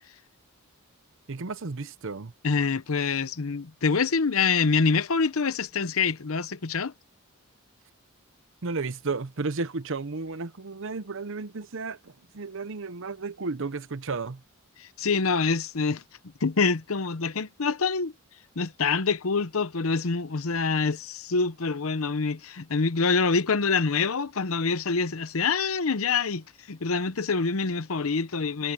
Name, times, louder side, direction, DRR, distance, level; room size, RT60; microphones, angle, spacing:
voice 1, 1.3-2.3 8.6-14.4, right 4 dB, 60° right, 0.8 m, -33 dB
voice 2, 2.4-6.9 14.8-16.0 16.4-18.1 18.6-28.7, left 4 dB, 70° left, 0.8 m, -26 dB
head